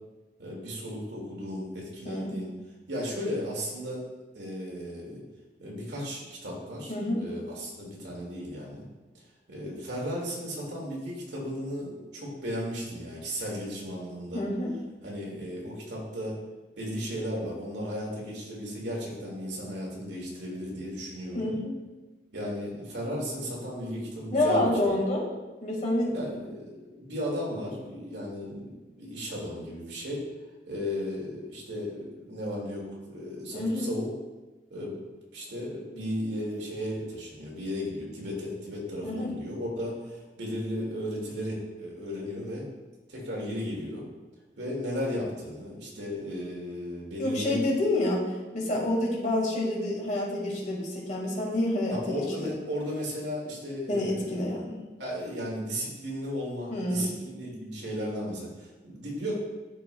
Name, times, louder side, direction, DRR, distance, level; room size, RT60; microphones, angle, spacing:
voice 1, 0.4-2.5 2.9-4.1 4.3-5.2 5.6-8.9 9.5-14.5 15.0-16.4 16.8-21.5 22.3-24.7 26.1-30.2 30.7-34.1 34.7-35.0 35.3-42.7 43.1-44.1 44.6-47.6 51.9-54.5 55.0-59.4, equal, 85° right, -3 dB, 2.1 m, -35 dB
voice 2, 2.0-2.4 6.9-7.2 14.3-14.7 21.3-21.7 24.3-25.3 25.6-26.3 33.5-33.9 39.0-39.3 47.2-52.5 53.9-54.7 56.7-57.1, left 1 dB, 45° left, -2 dB, 1.8 m, -28 dB
12.5 x 4.8 x 2.3 m, 1.2 s
head